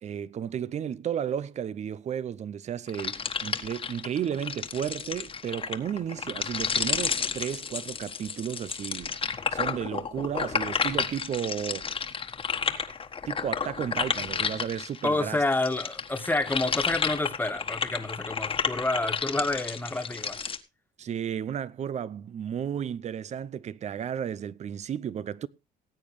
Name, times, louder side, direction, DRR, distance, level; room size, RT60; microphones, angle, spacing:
voice 1, 0.0-9.2 9.5-11.9 13.3-15.4 21.0-25.5, right 9 dB, 40° right, 0.6 m, -33 dB
sound 1, 2.9-15.1 15.5-20.6, left 6 dB, 30° left, 1.4 m, -31 dB
voice 2, 15.0-20.4, left 2 dB, 10° left, 1.6 m, -28 dB
19.0 x 8.7 x 3.2 m
cardioid pair, 110°, 17 cm